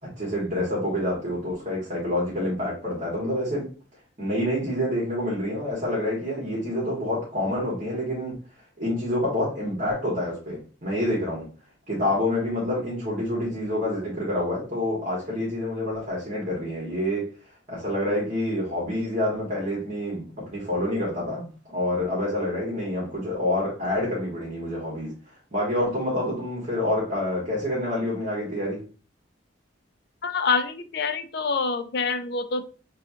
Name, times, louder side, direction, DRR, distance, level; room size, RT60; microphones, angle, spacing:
voice 1, 0.0-3.7 4.2-8.3 8.8-11.5 11.9-17.3 17.7-25.1 25.5-28.8, left 1 dB, 40° right, -5 dB, 1.7 m, -27 dB
voice 2, 30.2-32.6, left 4 dB, 60° left, 9 dB, 0.5 m, -26 dB
6.6 x 2.4 x 2.8 m, 0.37 s
head